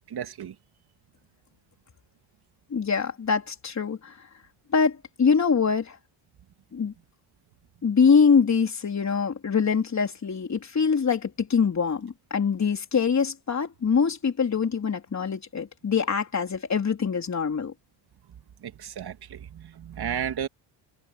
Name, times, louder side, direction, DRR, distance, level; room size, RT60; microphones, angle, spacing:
voice 1, 0.1-0.6 18.6-20.5, right 8 dB, 50° right, 2.3 m, -33 dB
voice 2, 2.7-4.2 4.7-6.0 6.7-6.9 7.8-17.7, left 6 dB, 35° left, 3.9 m, -24 dB
cardioid pair, 110°, 50 cm